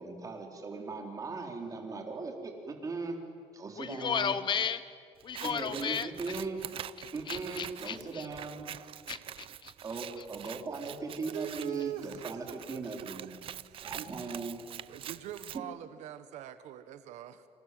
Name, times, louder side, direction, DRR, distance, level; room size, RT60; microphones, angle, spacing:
voice 1, 0.0-3.2 3.5-4.4 5.4-6.6 7.1-8.7 9.8-13.4 13.8-14.7 15.5-15.7, right 4 dB, 30° right, 2 dB, 4.4 m, -39 dB
voice 2, 3.8-4.8 5.2-6.1 7.3-8.3 9.1-9.7 10.2-10.3, left 7 dB, 40° left, 14 dB, 1.0 m, -34 dB
Scissors, 5.2-15.6, right 10 dB, 50° right, 0.6 m, -45 dB
voice 3, 11.3-13.4 13.7-14.1 14.9-17.5, right 11 dB, 75° right, 11 dB, 1.4 m, -43 dB
27.5 x 26.5 x 7.9 m, 2.1 s
cardioid pair, 130°, 12 cm